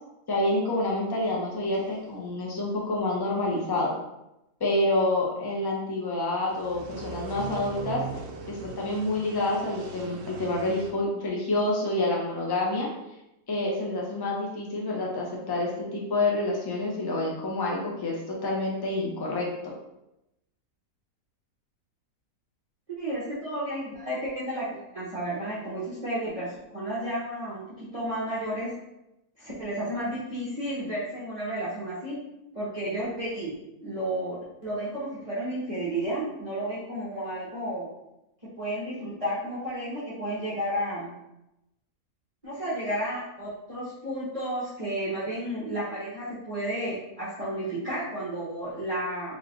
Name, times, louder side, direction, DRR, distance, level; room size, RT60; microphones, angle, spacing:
voice 1, 0.3-3.9 4.6-8.0 8.5-12.9 13.5-19.5, left 2 dB, 25° left, -3 dB, 0.6 m, -28 dB
sound 1, 6.5-10.9, right 4 dB, 85° right, 1.1 m, -40 dB
voice 2, 23.0-28.7 29.4-32.2 32.5-33.5 33.8-37.9 38.6-41.1 42.4-49.4, right 1 dB, 30° right, -9 dB, 0.8 m, -32 dB
3.3 x 2.8 x 3.7 m, 0.89 s
omnidirectional pair, 1.6 m